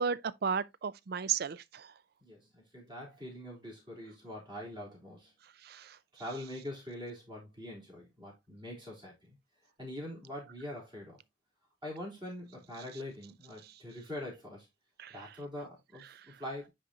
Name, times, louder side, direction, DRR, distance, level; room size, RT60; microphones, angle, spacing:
voice 1, 0.0-1.9 5.6-6.0 15.0-15.1, right 6 dB, 55° right, 0.4 m, -34 dB
voice 2, 2.2-5.3 6.1-9.4 9.8-11.2 11.8-14.7 15.1-16.7, left 1 dB, 25° right, 3.6 m, -44 dB
10.0 x 3.9 x 2.8 m
head